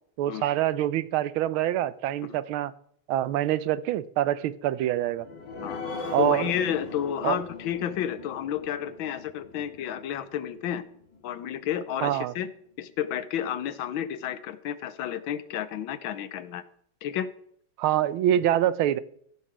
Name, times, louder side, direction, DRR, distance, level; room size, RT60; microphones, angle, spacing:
voice 1, 0.2-2.7 3.1-5.3 6.1-6.5 7.2-7.4 12.0-12.3 17.8-19.0, right 12 dB, 85° right, 1.5 m, -25 dB
sound 1, 4.9-12.0 12.4-12.5 12.9-13.0, left 4 dB, 60° left, 2.3 m, -40 dB
voice 2, 6.2-10.9 11.2-12.5 12.8-16.6 17.0-17.3, left 10 dB, 75° left, 1.5 m, -31 dB
14.0 x 5.8 x 6.1 m
omnidirectional pair, 2.2 m